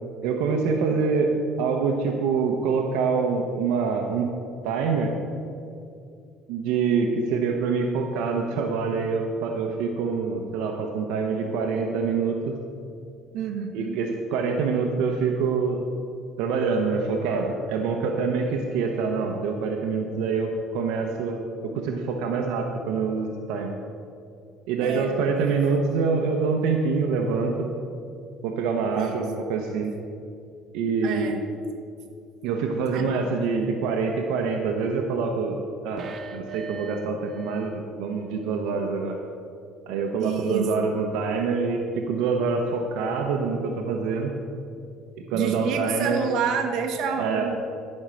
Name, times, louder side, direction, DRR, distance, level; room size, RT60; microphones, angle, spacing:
voice 1, 0.2-1.3 1.6-4.3 4.6-5.1 6.5-12.5 13.7-15.8 16.4-23.7 24.7-27.5 28.4-29.9 30.7-31.4 32.4-35.6 35.8-39.2 39.9-44.3 45.3-46.2 47.2-47.5, right 5 dB, 85° right, 2 dB, 0.9 m, -25 dB
voice 2, 13.3-14.0 24.8-25.1 28.9-29.2 31.0-31.4 32.9-33.1 40.2-40.7 45.3-47.6, right 6 dB, 65° right, 3 dB, 1.3 m, -28 dB
sound 1, 36.0-37.8 38.1-38.2, right 4 dB, 45° right, 0.6 m, -40 dB
12.0 x 5.5 x 6.3 m, 2.4 s
cardioid pair, 135°, 0 cm